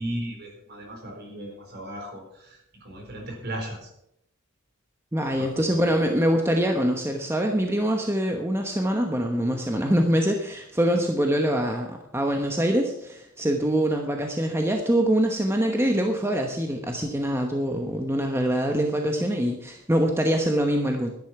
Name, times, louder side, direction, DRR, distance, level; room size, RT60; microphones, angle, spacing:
voice 1, 0.0-3.9 5.3-5.9, right 1 dB, 50° right, 2 dB, 4.1 m, -36 dB
voice 2, 5.1-21.1, equal, 10° right, 3 dB, 1.0 m, -24 dB
12.0 x 10.5 x 5.9 m, 0.77 s
head